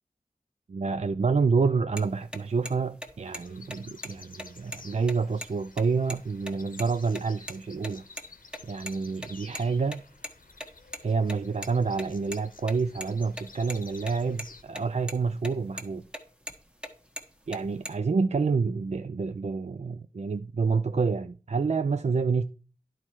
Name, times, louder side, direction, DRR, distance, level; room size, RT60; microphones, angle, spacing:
voice 1, 0.7-8.0 8.6-10.0 11.0-16.0 17.5-22.4, right 4 dB, 55° right, 0.4 m, -28 dB
sound 1, 2.0-2.1 2.3-2.4 2.7-2.8 3.0-3.4 3.7-3.8 4.0-4.1 4.4-5.5 5.7-5.8 6.1-6.2 6.5-6.8 7.1-7.6 7.8-8.9 9.2-11.7 12.0-13.8 14.1-14.2 14.4-14.8 15.1-15.5 15.8-16.9 17.2-17.9, equal, 5° right, 1.2 m, -38 dB
sound 2, 3.2-14.6, left 4 dB, 90° left, 0.8 m, -51 dB
11.0 x 4.3 x 4.6 m
wide cardioid pair, 55°, 14 cm